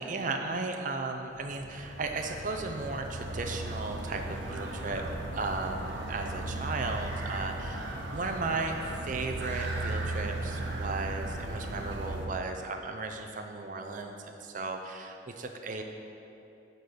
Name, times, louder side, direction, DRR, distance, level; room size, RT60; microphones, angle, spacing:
voice 1, 0.0-4.2 4.5-5.0 5.3-8.8 9.0-15.8, right 3 dB, 45° right, 4 dB, 0.5 m, -35 dB
sound 1, 1.3-12.3, right 2 dB, 80° right, 1.1 m, -36 dB
10.0 x 3.9 x 6.7 m, 2.8 s
head